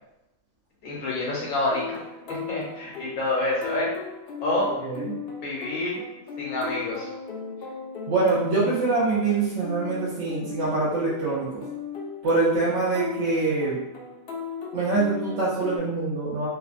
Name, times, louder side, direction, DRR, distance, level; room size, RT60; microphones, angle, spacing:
voice 1, 0.8-3.9 4.4-4.7 5.4-6.0 6.4-7.1, left 2 dB, 90° left, -4 dB, 1.3 m, -28 dB
sound 1, 1.7-15.8, left 6 dB, 65° left, 0.6 m, -37 dB
voice 2, 4.8-5.1 8.1-11.5 12.2-13.8 14.7-16.5, right 3 dB, 65° right, -9 dB, 0.9 m, -24 dB
3.2 x 2.0 x 2.4 m, 0.92 s
omnidirectional pair, 1.5 m